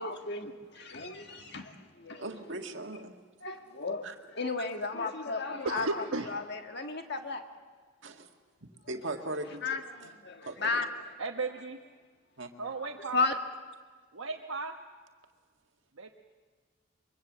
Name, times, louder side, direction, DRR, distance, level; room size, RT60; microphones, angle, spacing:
voice 1, 0.0-1.7 2.0-2.2 3.4-4.0 4.4-5.9 6.3-7.4 9.6-9.8 10.2-10.9 13.1-13.3, left 4 dB, 55° left, 5 dB, 1.6 m, -33 dB
voice 2, 2.2-3.1 4.0-4.1 7.1-7.2 8.0-8.3 8.9-10.1 10.4-10.8 12.4-12.5, right 2 dB, 65° right, 3 dB, 1.9 m, -39 dB
voice 3, 5.6-6.3 11.2-11.8 12.6-13.4 14.1-14.7 16.0-16.1, right 3 dB, 90° right, 1 dB, 1.2 m, -35 dB
24.5 x 23.5 x 7.4 m, 1.5 s
head